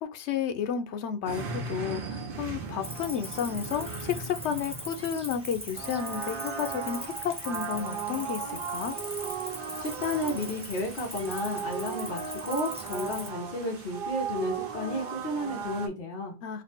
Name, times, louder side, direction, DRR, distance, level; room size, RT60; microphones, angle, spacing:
voice 1, 0.0-9.0 16.4-16.6, left 8 dB, 75° left, 0.9 m, -32 dB
sound 1, 1.2-15.9, right 5 dB, 55° right, 0.9 m, -37 dB
Cricket, 2.8-13.3, equal, 10° right, 0.4 m, -41 dB
voice 2, 9.8-16.3, left 1 dB, 50° left, 1.0 m, -32 dB
3.2 x 2.1 x 4.2 m
omnidirectional pair, 1.2 m